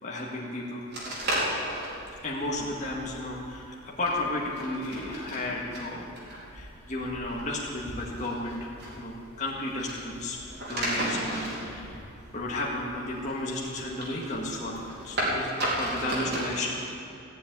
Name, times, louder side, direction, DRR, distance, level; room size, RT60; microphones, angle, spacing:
voice 1, 0.0-0.9 2.2-6.2 6.5-10.4 10.7-12.0 12.3-17.0, left 1 dB, 30° left, -4 dB, 2.0 m, -33 dB
sound 1, 0.9-16.5, right 1 dB, 50° right, 4.2 m, -35 dB
16.0 x 7.5 x 9.6 m, 2.6 s
head